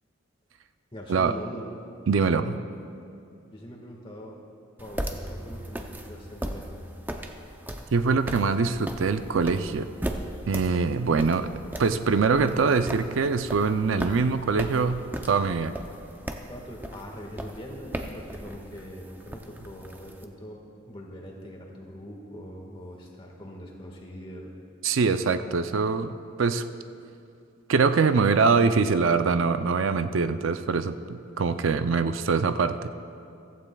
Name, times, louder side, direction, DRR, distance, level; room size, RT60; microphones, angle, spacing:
voice 1, 0.9-1.7 3.5-4.4 4.8-6.8 16.5-24.5, equal, 25° left, -1 dB, 1.6 m, -42 dB
voice 2, 2.1-2.6 7.9-9.9 10.5-11.5 11.8-15.8 24.8-26.1 26.4-26.7 27.7-30.9 31.4-32.9, right 4 dB, 80° right, 10 dB, 0.5 m, -23 dB
sound 1, 4.8-20.2, right 1 dB, 10° right, 0.5 m, -38 dB
15.5 x 15.0 x 2.3 m, 2.7 s
head